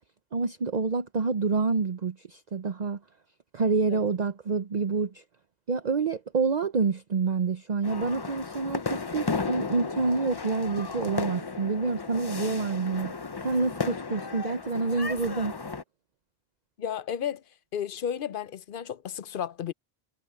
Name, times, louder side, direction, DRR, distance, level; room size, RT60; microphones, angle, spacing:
voice 1, 0.3-3.0 3.5-5.2 5.7-13.1 13.4-15.5, right 4 dB, 45° right, 0.8 m, -27 dB
sound 1, 7.8-15.8, left 4 dB, 30° left, 0.6 m, -34 dB
voice 2, 16.8-17.4 17.7-19.7, left 9 dB, 60° left, 0.8 m, -33 dB
omnidirectional pair, 1.1 m